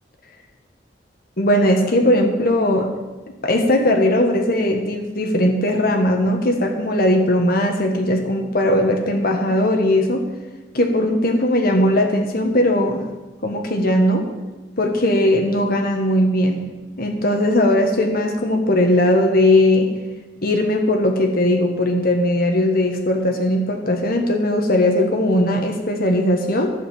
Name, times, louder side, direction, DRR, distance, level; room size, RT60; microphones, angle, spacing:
voice 1, 1.4-2.9 3.4-10.3 10.7-13.0 13.4-14.3 14.8-16.6 17.0-19.9 20.4-26.7, left 1 dB, 50° left, 3 dB, 1.3 m, -18 dB
12.0 x 6.7 x 8.4 m, 1.2 s
head